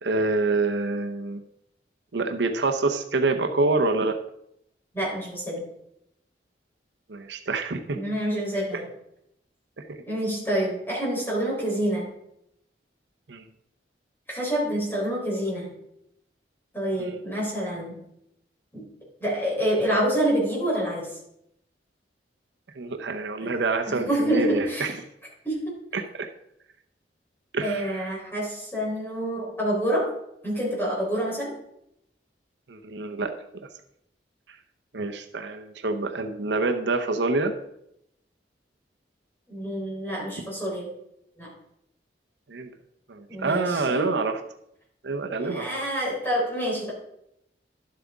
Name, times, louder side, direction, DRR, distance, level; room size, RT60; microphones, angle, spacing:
voice 1, 0.0-1.4 2.1-4.2 7.1-8.0 9.9-10.0 13.3-13.4 17.0-17.1 22.8-24.9 25.9-26.3 27.5-28.1 32.7-33.3 34.9-37.5 42.5-42.7 43.1-44.4 45.0-45.7, right 3 dB, 75° right, 5 dB, 0.7 m, -26 dB
voice 2, 4.9-5.6 7.9-8.9 10.1-12.1 14.3-15.7 16.7-18.0 18.7-18.8 19.2-21.1 23.4-23.5 23.9-25.0 25.4-25.8 27.6-30.1 30.4-31.5 39.5-40.9 41.4-41.5 43.3-44.1 45.5-46.9, right 1 dB, 10° left, -5 dB, 3.8 m, -27 dB
11.5 x 7.6 x 3.6 m, 0.78 s
head